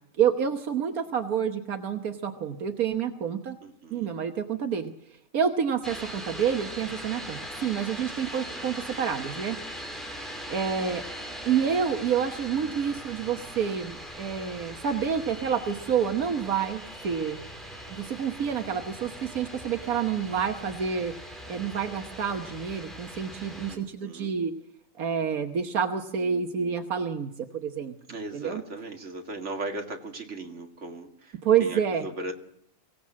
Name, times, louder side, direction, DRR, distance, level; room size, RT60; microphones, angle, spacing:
voice 1, 0.2-3.6 3.9-4.9 5.3-9.9 10.5-11.0 11.4-17.4 17.9-21.1 21.5-24.5 25.0-28.0 28.3-28.6 31.4-32.0, right 7 dB, 80° right, 6 dB, 1.6 m, -28 dB
voice 2, 3.6-4.2 8.2-8.7 23.7-24.3 28.1-32.3, right 2 dB, 55° right, 3 dB, 2.5 m, -38 dB
sound 1, 5.8-23.8, equal, ahead, 4.0 m, -40 dB
24.0 x 16.5 x 7.5 m, 0.73 s
omnidirectional pair, 1.5 m